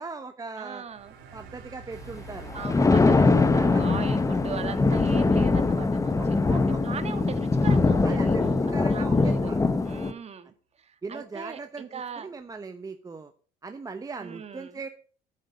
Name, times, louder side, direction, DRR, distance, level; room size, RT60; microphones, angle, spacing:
voice 1, 0.0-0.8 1.3-2.6 3.2-3.4 3.7-3.8 6.1-6.8 8.0-9.6 11.0-13.3 13.6-14.9, right 4 dB, 20° right, 8 dB, 0.9 m, -39 dB
voice 2, 0.6-1.1 2.5-8.4 8.9-9.5 9.8-10.5 10.8-12.3 14.2-14.8, right 6 dB, 40° right, 11 dB, 1.6 m, -39 dB
sound 1, 0.8-7.9, right 4 dB, 85° right, 2.9 m, -47 dB
Thunder, 2.4-10.1, left 3 dB, 20° left, 1.0 m, -22 dB
11.0 x 8.4 x 6.8 m, 0.41 s
cardioid pair, 110°, 17 cm